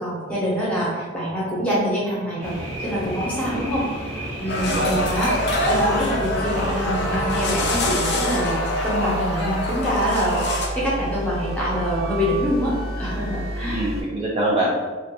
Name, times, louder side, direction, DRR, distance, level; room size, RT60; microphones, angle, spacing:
voice 1, 0.0-2.5 2.8-3.9 4.4-13.9, equal, 5° left, -7 dB, 0.6 m, -25 dB
sound 1, 2.4-8.0, equal, 90° right, 0.9 m, -32 dB
voice 2, 3.5-3.8 4.7-5.0 13.7-14.7, right 1 dB, 30° right, -6 dB, 0.3 m, -25 dB
sound 2, 4.5-10.7, left 1 dB, 55° left, 0.4 m, -25 dB
sound 3, 4.6-14.0, right 1 dB, 60° right, 0.7 m, -30 dB
2.4 x 2.1 x 2.8 m, 1.4 s
head